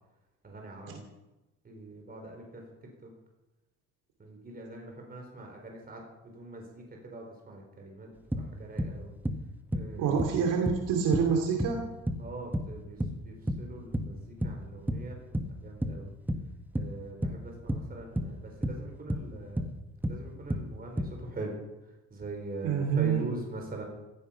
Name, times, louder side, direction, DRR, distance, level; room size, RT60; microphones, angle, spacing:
voice 1, 0.4-0.9 1.6-2.4 4.2-6.0 6.3-8.1 8.5-9.1 9.7-10.1 12.2-13.0 13.3-14.2 14.4-15.1 15.6-16.1 16.7-19.6 20.1-21.0 21.3-21.5 22.1-23.8, right 2 dB, 30° right, 1 dB, 4.4 m, -42 dB
sound 1, 8.3-14.6 14.9-21.2, equal, 5° right, 1.4 m, -32 dB
voice 2, 10.0-11.9 22.6-23.4, right 6 dB, 90° right, 2 dB, 2.7 m, -27 dB
16.5 x 14.5 x 5.8 m, 1.0 s
cardioid pair, 115°, 32 cm